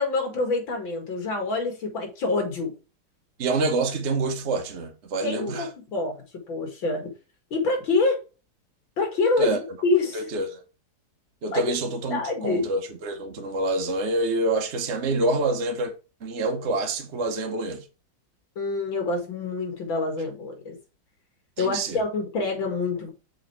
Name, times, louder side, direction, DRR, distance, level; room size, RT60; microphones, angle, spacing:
voice 1, 0.0-2.7 5.2-6.1 6.5-7.1 7.5-8.2 9.0-10.3 11.5-11.7 12.1-12.7 18.6-20.8 21.6-23.1, left 3 dB, 85° left, 2.8 m, -26 dB
voice 2, 3.4-5.7 9.4-9.6 10.1-10.6 11.4-15.9 16.2-17.8 21.6-22.0, right 2 dB, 40° right, 1.2 m, -27 dB
6.5 x 4.6 x 4.5 m
omnidirectional pair, 2.1 m